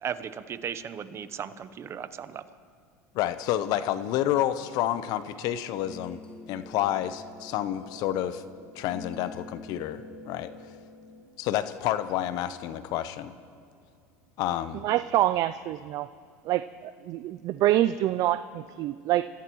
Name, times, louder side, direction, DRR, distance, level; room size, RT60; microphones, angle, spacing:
voice 1, 0.0-2.4, right 8 dB, 35° right, 13 dB, 0.9 m, -36 dB
voice 2, 3.1-6.2 6.5-8.4 8.7-10.5 11.4-13.3 14.4-14.8, left 12 dB, 60° left, 13 dB, 0.9 m, -29 dB
sound 1, 4.8-11.2, left 3 dB, 15° left, 1.9 m, -47 dB
voice 3, 14.7-16.1 16.5-19.2, right 14 dB, 55° right, 12 dB, 0.4 m, -26 dB
29.0 x 14.5 x 3.1 m, 2.4 s
supercardioid pair, 95°, 7 cm